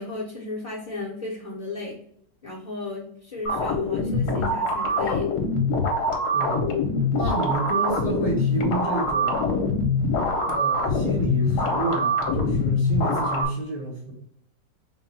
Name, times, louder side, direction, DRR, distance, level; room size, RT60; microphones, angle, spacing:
voice 1, 0.0-2.0 2.4-5.3, left 3 dB, 35° left, -5 dB, 0.7 m, -34 dB
sound 1, 3.5-13.5, left 2 dB, 65° left, 1.2 m, -24 dB
voice 2, 7.1-9.6 10.5-14.1, right 2 dB, 30° right, -3 dB, 0.8 m, -30 dB
3.6 x 2.3 x 4.0 m, 0.67 s
omnidirectional pair, 1.9 m